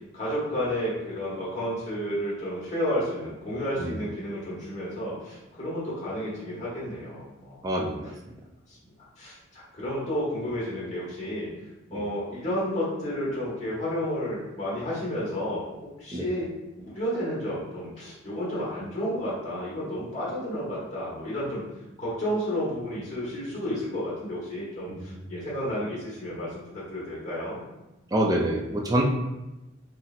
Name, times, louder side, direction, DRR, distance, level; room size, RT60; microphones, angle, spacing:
voice 1, 0.1-7.7 8.7-8.8 9.2-11.5 11.9-15.6 16.0-21.6 22.0-27.6, equal, 35° left, -7 dB, 1.1 m, -31 dB
voice 2, 7.6-8.3 11.9-12.0 16.1-16.3 24.9-25.2 28.1-29.0, right 1 dB, 20° right, 0 dB, 0.3 m, -27 dB
4.1 x 2.0 x 2.4 m, 1.0 s
head